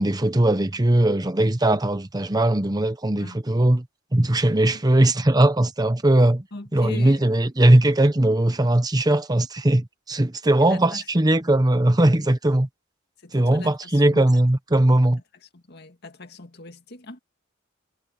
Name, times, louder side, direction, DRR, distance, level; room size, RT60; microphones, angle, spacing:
voice 1, 0.0-3.8 4.1-6.4 6.7-12.7 13.3-15.2, right 1 dB, 20° right, 0.9 m, -19 dB
voice 2, 6.5-7.3 10.4-11.1 13.2-14.4 15.4-17.2, left 2 dB, 55° left, 2.1 m, -40 dB
head